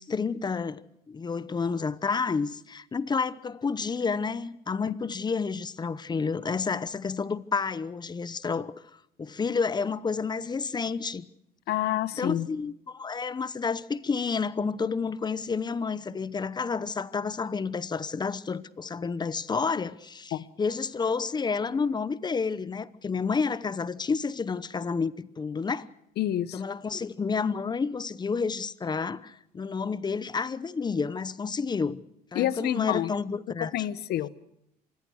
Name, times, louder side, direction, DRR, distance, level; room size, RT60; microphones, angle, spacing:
voice 1, 0.0-8.7 9.2-11.3 12.2-25.9 26.5-32.0 32.3-33.7, left 5 dB, 25° left, 0.9 m, -30 dB
voice 2, 11.7-12.5 20.3-20.4 26.2-26.6 32.3-33.1 33.6-34.3, left 12 dB, 70° left, 1.1 m, -28 dB
25.5 x 21.0 x 6.4 m
cardioid pair, 110°, 17 cm